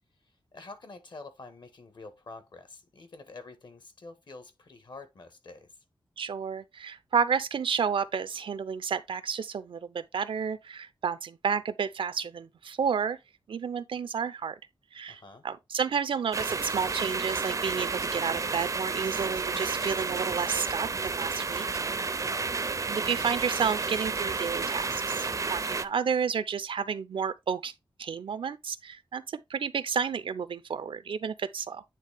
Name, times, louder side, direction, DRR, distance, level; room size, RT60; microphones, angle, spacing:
voice 1, 0.5-5.7 15.1-15.4 22.2-22.6, left 3 dB, 60° left, 1.4 m, -47 dB
voice 2, 6.2-13.2 13.5-14.6 14.9-21.7 22.9-27.7 28.0-31.8, right 6 dB, 80° right, 0.6 m, -31 dB
sound 1, 16.3-25.8, right 4 dB, 40° right, 0.5 m, -31 dB
9.3 x 3.3 x 3.5 m
wide cardioid pair, 90°, 9 cm